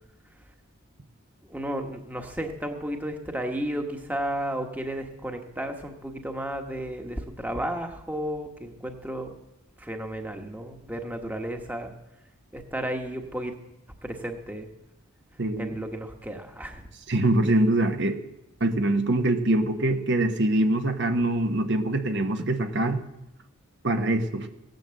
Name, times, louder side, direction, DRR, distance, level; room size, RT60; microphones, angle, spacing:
voice 1, 1.5-9.3 9.8-11.9 12.5-13.5 14.0-14.7 15.6-16.8, right 1 dB, 10° right, 3 dB, 1.2 m, -33 dB
voice 2, 15.4-15.7 17.1-18.2 18.6-23.0 23.8-24.5, right 1 dB, 55° right, 5 dB, 1.1 m, -24 dB
17.0 x 10.5 x 7.7 m, 0.89 s
head